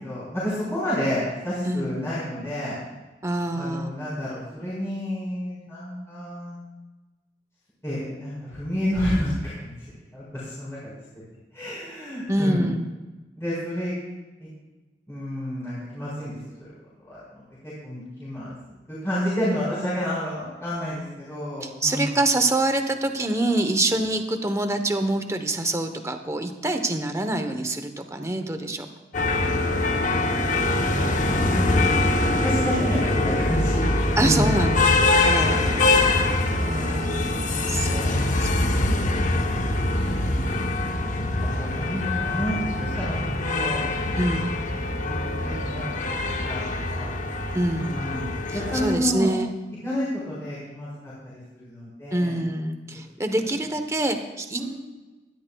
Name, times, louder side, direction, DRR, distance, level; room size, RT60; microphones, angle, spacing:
voice 1, 0.0-2.8 3.5-6.6 7.8-9.7 10.1-10.9 11.5-12.7 13.4-13.9 14.4-14.5 15.1-16.4 17.1-18.5 19.0-22.2 29.9-33.9 34.2-34.5 35.1-35.6 36.0-37.2 37.5-38.2 39.0-39.2 39.5-40.5 41.4-44.4 44.7-44.8 45.1-45.2 45.4-46.0 46.3-46.6 46.9-47.1 47.8-49.3 49.8-51.1 51.5-52.4 52.9-53.0 53.4-53.6 54.6-54.7, equal, 15° left, -10 dB, 4.5 m, -30 dB
voice 2, 1.6-2.0 3.2-3.9 12.3-12.9 21.6-28.9 34.2-36.1 36.6-38.1 38.4-38.5 44.2-44.5 47.5-47.9 48.5-49.5 52.1-54.6, right 1 dB, 15° right, 7 dB, 0.9 m, -26 dB
sound 1, 29.1-48.9, left 2 dB, 45° left, 1.0 m, -24 dB
20.5 x 12.5 x 2.3 m, 1.2 s
head